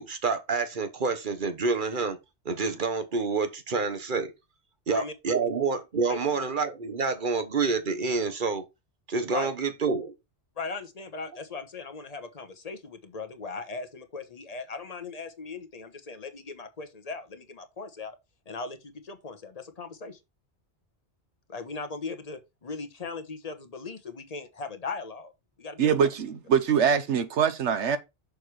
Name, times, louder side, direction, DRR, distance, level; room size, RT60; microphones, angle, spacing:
voice 1, 0.0-2.2 2.4-4.3 4.9-8.6 9.1-10.1, right 4 dB, 45° right, 1.3 m, -28 dB
voice 2, 10.6-18.2 18.5-20.2 21.5-25.3 25.6-26.0, left 4 dB, 35° left, 1.1 m, -38 dB
voice 3, 25.8-28.0, right 7 dB, 85° right, 1.2 m, -23 dB
6.5 x 4.7 x 4.7 m
omnidirectional pair, 1.2 m